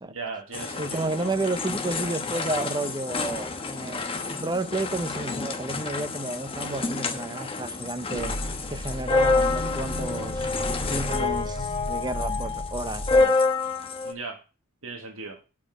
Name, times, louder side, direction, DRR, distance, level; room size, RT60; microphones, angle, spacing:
voice 1, 0.1-1.3 14.0-14.4 14.8-15.4, right 4 dB, 70° right, 1.5 m, -37 dB
sound 1, 0.5-14.1, left 3 dB, 25° left, 1.0 m, -28 dB
voice 2, 0.8-8.4 8.7-10.5 10.9-13.4, right 2 dB, 20° right, 0.7 m, -31 dB
sound 2, 8.2-13.2, equal, 45° left, 1.9 m, -34 dB
8.4 x 5.2 x 6.2 m
head